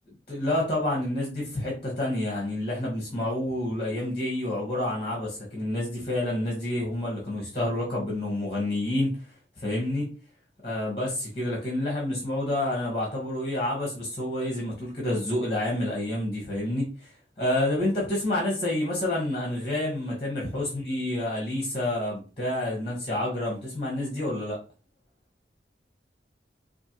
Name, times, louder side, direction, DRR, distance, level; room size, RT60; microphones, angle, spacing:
voice 1, 0.3-9.1 9.6-10.1 10.6-17.1 17.4-24.6, left 1 dB, 30° left, -3 dB, 1.1 m, -28 dB
4.3 x 2.6 x 2.9 m, 0.36 s
head